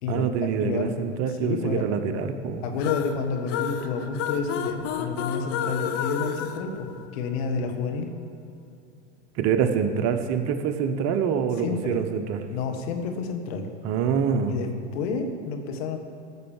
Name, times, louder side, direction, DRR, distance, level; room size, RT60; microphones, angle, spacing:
voice 1, 0.1-2.6 9.3-12.5 13.8-14.6, right 7 dB, 45° right, 7 dB, 1.1 m, -25 dB
voice 2, 1.3-1.8 2.6-6.9 7.1-8.1 11.6-12.0 12.5-13.7 14.5-16.0, left 5 dB, 65° left, 4 dB, 1.7 m, -29 dB
sound 1, 2.8-7.5, left 9 dB, 45° left, 0.9 m, -31 dB
14.0 x 6.5 x 7.3 m, 2.6 s
hypercardioid pair, 100°, 34 cm